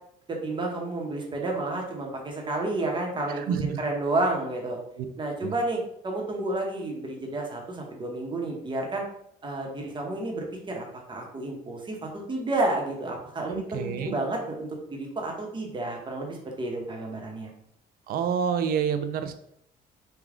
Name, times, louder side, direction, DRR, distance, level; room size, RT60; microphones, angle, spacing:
voice 1, 0.3-4.8 5.2-9.0 9.4-17.5, right 2 dB, 30° right, 0 dB, 0.9 m, -31 dB
voice 2, 3.3-3.8 5.0-5.1 5.4-5.5 13.4-14.1 18.1-19.3, right 7 dB, 60° right, 9 dB, 0.4 m, -28 dB
3.4 x 2.3 x 3.6 m, 0.72 s
cardioid pair, 110°, 17 cm